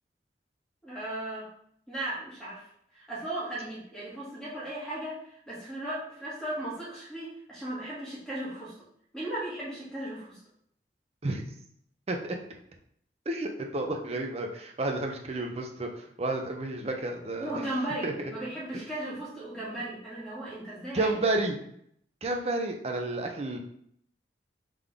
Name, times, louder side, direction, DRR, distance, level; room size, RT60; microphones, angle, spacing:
voice 1, 0.8-1.5 1.9-2.7 2.9-8.9 9.1-10.4 17.4-21.2, right 1 dB, 5° left, -8 dB, 1.7 m, -36 dB
voice 2, 13.3-17.6 18.0-18.3 18.7-18.8 20.9-21.6 22.2-23.6, right 2 dB, 35° right, 3 dB, 0.6 m, -31 dB
3.8 x 3.6 x 3.4 m, 0.69 s
head